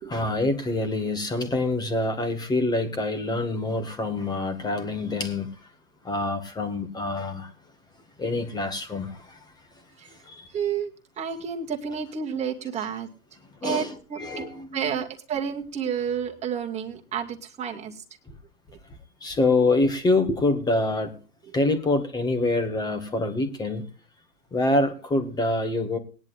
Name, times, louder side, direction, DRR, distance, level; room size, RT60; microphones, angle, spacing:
voice 1, 0.1-5.5 6.0-7.5 8.2-9.4 10.1-10.5 13.6-15.0 19.2-21.2 21.5-23.9 24.5-26.0, left 2 dB, 10° left, 8 dB, 1.9 m, -26 dB
voice 2, 10.5-10.9 11.2-13.1 13.6-14.4 14.7-18.0, right 7 dB, 15° right, 2 dB, 2.2 m, -30 dB
20.5 x 10.5 x 2.5 m, 0.36 s
hypercardioid pair, 135°, 46 cm